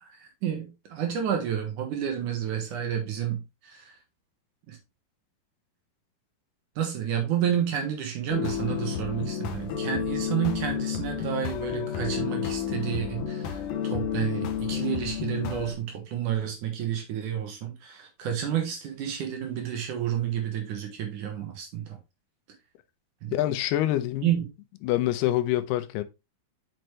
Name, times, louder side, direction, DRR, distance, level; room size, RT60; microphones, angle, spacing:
voice 1, 0.0-3.9 4.7-4.8 6.8-22.0 23.2-23.3 24.2-24.5, right 9 dB, 60° right, 2.5 m, -30 dB
sound 1, 8.3-15.7, left 8 dB, 70° left, 2.0 m, -31 dB
voice 2, 23.3-24.3 24.8-26.0, left 14 dB, 90° left, 2.7 m, -26 dB
6.5 x 6.1 x 3.2 m
omnidirectional pair, 4.5 m